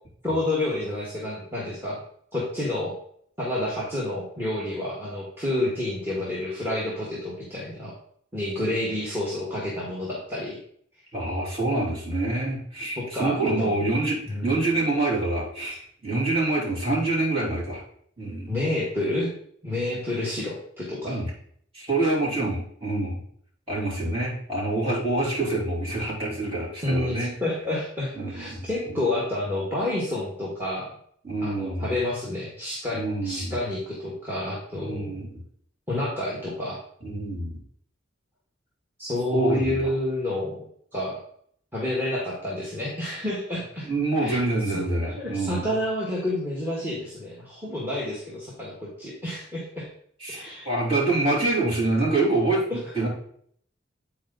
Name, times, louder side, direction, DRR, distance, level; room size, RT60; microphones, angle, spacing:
voice 1, 0.2-2.0 2.3-2.9 3.4-7.9 8.3-10.6 13.0-13.8 14.2-14.6 18.5-19.3 19.6-21.2 26.8-30.9 31.4-35.3 35.9-36.8 39.0-40.7 40.9-41.2 41.7-43.9 44.2-44.4 44.7-44.8 45.2-49.9 50.3-50.7 52.7-52.8, left 1 dB, 10° right, -5 dB, 1.5 m, -29 dB
voice 2, 11.1-17.8 18.2-18.6 21.0-21.3 21.7-23.2 23.7-27.3 28.2-28.7 31.2-31.9 32.9-33.5 34.8-35.4 37.0-37.6 39.3-39.9 43.8-45.7 50.2-53.1, right 2 dB, 30° right, -6 dB, 3.0 m, -26 dB
8.5 x 4.5 x 3.9 m, 0.64 s
head